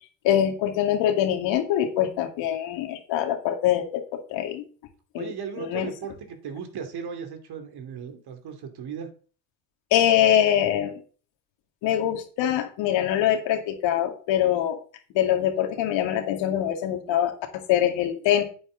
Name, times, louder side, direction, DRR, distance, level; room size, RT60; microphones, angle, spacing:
voice 1, 0.2-4.6 5.1-5.3 5.6-5.9 9.9-11.0 11.8-14.8 15.1-18.4, left 11 dB, 70° left, 5 dB, 2.4 m, -24 dB
voice 2, 5.2-9.1, right 6 dB, 55° right, 6 dB, 2.8 m, -36 dB
9.6 x 8.9 x 4.0 m, 0.39 s
hypercardioid pair, 65°, 46 cm